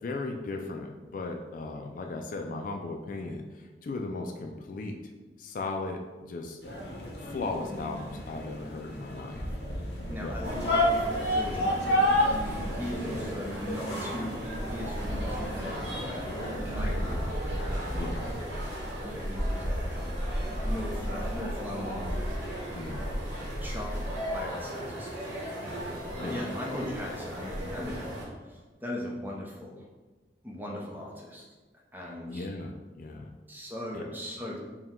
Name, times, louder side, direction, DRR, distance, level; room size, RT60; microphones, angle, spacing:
voice 1, 0.0-5.0 5.4-6.6 7.2-9.4 10.1-10.4 13.0-13.2 17.9-18.3 22.8-23.1 26.2-26.4 32.3-33.3 33.9-34.0, left 3 dB, 50° left, 3 dB, 0.3 m, -37 dB
sound 1, 6.6-18.5, equal, 65° left, 0.8 m, -32 dB
voice 2, 10.1-18.1 19.0-22.1 22.7-22.8 23.6-24.0 24.3-29.9 30.4-31.4 31.9-32.5 33.5-34.6, left 1 dB, 10° right, -3 dB, 0.6 m, -39 dB
sound 2, 10.4-28.2, equal, 80° right, 1.0 m, -35 dB
4.5 x 2.2 x 3.6 m, 1.3 s
head